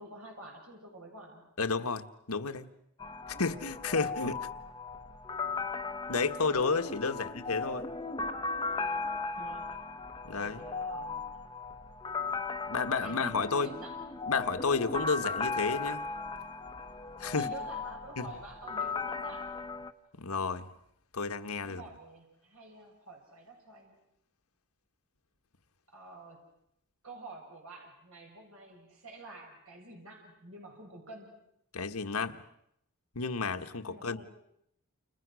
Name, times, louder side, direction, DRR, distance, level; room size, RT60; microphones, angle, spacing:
voice 1, 0.0-1.5 3.3-3.4 7.1-7.3 9.3-9.8 10.4-11.3 13.0-14.0 17.3-19.5 21.6-24.0 25.9-26.5 27.0-31.3 33.9-34.3, right 2 dB, 70° right, 7.8 m, -49 dB
voice 2, 1.6-2.7 3.4-4.5 6.1-7.9 10.2-10.6 12.7-13.7 14.3-16.0 17.2-17.5 18.2-18.3 20.2-20.7 21.1-21.8 31.7-32.4 33.1-34.2, left 4 dB, 85° left, 1.6 m, -31 dB
sound 1, 3.0-19.9, left 4 dB, 20° left, 1.0 m, -37 dB
30.0 x 29.5 x 6.4 m
head